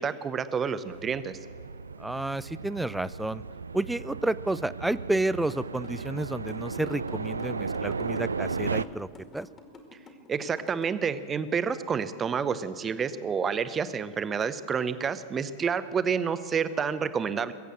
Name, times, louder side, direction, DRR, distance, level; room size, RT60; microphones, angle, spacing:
voice 1, 0.0-1.4 10.3-17.5, right 6 dB, 20° right, 13 dB, 0.7 m, -29 dB
sound 1, 0.9-8.8, right 4 dB, 75° right, 0.4 m, -35 dB
voice 2, 2.0-3.4 3.7-9.1 9.3-9.5, right 2 dB, 5° right, 19 dB, 0.3 m, -30 dB
sound 2, 5.5-10.8, left 4 dB, 25° left, 2.2 m, -49 dB
21.0 x 8.3 x 7.7 m, 2.3 s
figure-of-eight pair, 90°, 0 cm